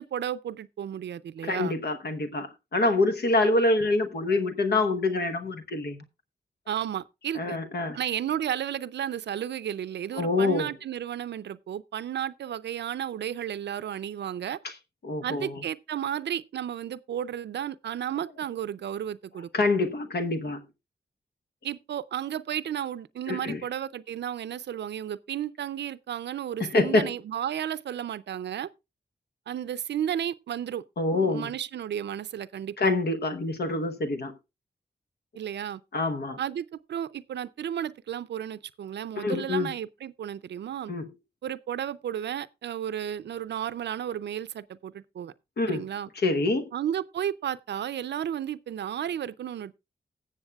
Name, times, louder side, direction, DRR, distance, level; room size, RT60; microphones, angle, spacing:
voice 1, 0.0-1.7 6.7-7.6 7.9-14.6 15.2-19.5 21.6-28.7 29.5-30.8 31.3-32.9 35.4-35.8 36.4-40.9 41.4-45.3 45.7-46.1 46.7-49.8, right 10 dB, 85° right, 0.5 m, -33 dB
voice 2, 1.4-6.0 7.3-8.0 10.1-10.7 14.6-14.7 15.0-15.6 19.5-20.6 23.3-23.6 26.6-27.1 31.0-31.5 32.8-34.4 35.9-36.4 39.2-39.7 40.9-41.1 45.6-45.8 46.2-46.7, left 2 dB, 70° left, 1.1 m, -26 dB
20.0 x 7.2 x 2.3 m
cardioid pair, 50°, 18 cm